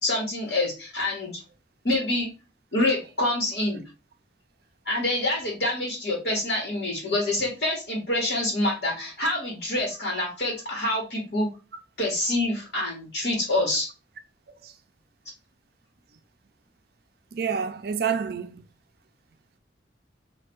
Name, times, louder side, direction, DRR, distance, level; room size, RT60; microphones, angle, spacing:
voice 1, 0.0-1.3 1.8-2.3 2.7-3.8 4.8-11.5 12.0-13.9, left 1 dB, 60° left, 1.7 m, -26 dB
voice 2, 17.3-18.6, right 6 dB, 60° right, 0.4 m, -28 dB
3.3 x 2.7 x 4.4 m
head